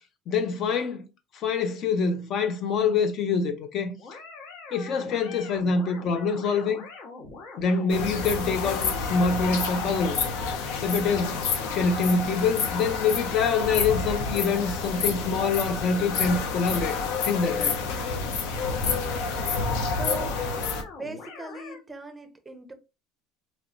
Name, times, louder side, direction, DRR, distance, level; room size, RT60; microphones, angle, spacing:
voice 1, 0.3-1.1 1.3-4.0 4.7-6.8 7.6-10.2 10.8-11.4 11.7-17.8, left 4 dB, 40° left, 0.4 m, -25 dB
sound 1, 4.0-21.8, left 3 dB, 70° left, 1.1 m, -43 dB
sound 2, 7.9-20.8, left 5 dB, 85° left, 0.7 m, -29 dB
voice 2, 19.0-19.7 20.0-20.7 21.0-22.7, right 2 dB, 10° right, 0.5 m, -40 dB
3.0 x 3.0 x 2.5 m
cardioid pair, 145°, 0 cm